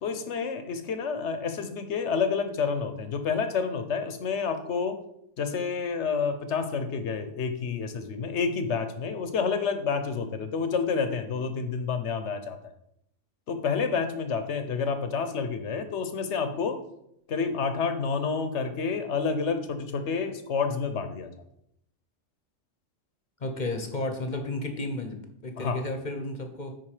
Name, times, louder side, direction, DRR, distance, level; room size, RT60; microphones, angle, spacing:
voice 1, 0.0-5.0 5.4-12.7 13.5-16.8 17.3-21.3 25.6-25.8, left 5 dB, 65° left, 9 dB, 1.1 m, -29 dB
voice 2, 23.4-26.7, left 2 dB, 40° left, 5 dB, 1.0 m, -33 dB
10.0 x 4.2 x 4.9 m, 0.76 s
omnidirectional pair, 1.3 m